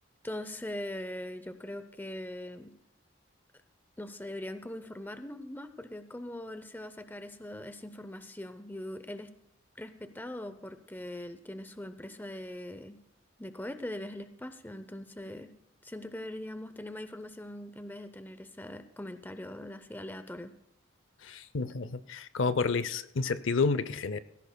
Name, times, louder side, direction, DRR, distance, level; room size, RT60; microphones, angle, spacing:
voice 1, 0.2-2.8 4.0-9.3 9.8-13.0 13.4-15.5 15.8-20.5, left 1 dB, 10° left, 10 dB, 0.6 m, -41 dB
voice 2, 21.2-24.2, left 4 dB, 70° left, 14 dB, 0.6 m, -30 dB
18.0 x 16.0 x 2.3 m, 0.78 s
head